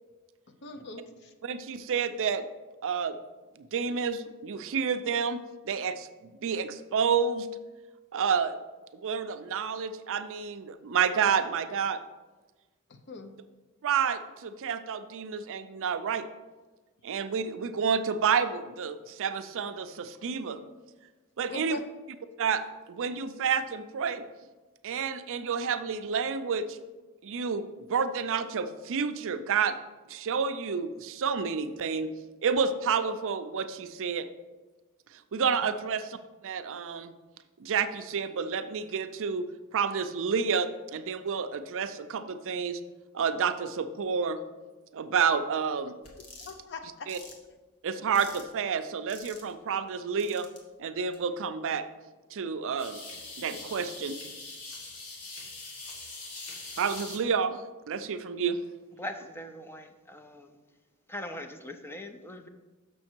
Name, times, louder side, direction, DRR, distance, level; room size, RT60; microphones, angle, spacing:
voice 1, 0.6-1.3 12.9-13.3 21.5-21.8 35.6-35.7 46.4-47.1, left 3 dB, 50° left, 7 dB, 0.6 m, -41 dB
voice 2, 1.4-2.5 2.8-3.1 3.7-6.1 6.4-7.5 8.1-8.6 8.9-12.0 13.8-16.2 17.0-20.6 21.4-21.8 22.4-22.6 22.9-24.2 24.8-26.8 27.2-27.6 27.9-29.8 30.1-32.1 32.4-34.3 35.3-36.2 36.4-37.1 37.6-39.5 39.7-42.8 43.1-44.4 44.9-45.9 47.1-47.2 47.8-50.5 50.8-51.8 52.3-53.0 53.4-54.2 56.8-58.6, right 6 dB, 60° right, 10 dB, 0.5 m, -29 dB
sound 1, 46.0-46.5 47.1-47.3 48.1-48.5 49.1-49.5 50.2-50.6 51.1-51.2 52.8-57.2, left 3 dB, 85° left, 1.5 m, -43 dB
voice 3, 59.0-60.6 61.1-62.5, left 1 dB, 10° left, 7 dB, 0.5 m, -41 dB
6.5 x 6.2 x 4.4 m, 1.2 s
head